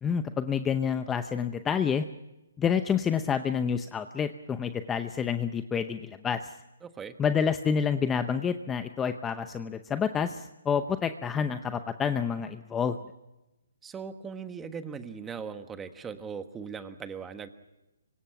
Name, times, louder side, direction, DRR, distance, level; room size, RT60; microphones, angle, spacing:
voice 1, 0.0-2.0 2.6-6.5 7.2-13.0, left 7 dB, 10° left, 9 dB, 0.7 m, -28 dB
voice 2, 6.8-7.2 13.8-17.5, right 6 dB, 10° right, 9 dB, 1.4 m, -39 dB
26.5 x 24.5 x 6.0 m, 0.99 s
hypercardioid pair, 155°, 0 cm